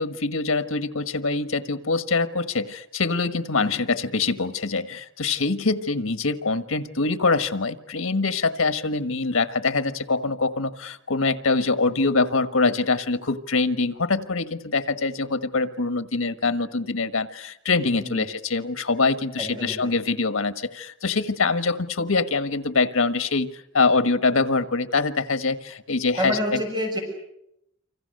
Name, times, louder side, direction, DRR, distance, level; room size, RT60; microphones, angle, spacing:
voice 1, 0.0-26.6, left 3 dB, 90° left, 10 dB, 1.4 m, -24 dB
voice 2, 19.4-19.9 26.2-27.0, equal, 20° right, 2 dB, 6.5 m, -28 dB
28.0 x 25.5 x 6.6 m, 0.79 s
head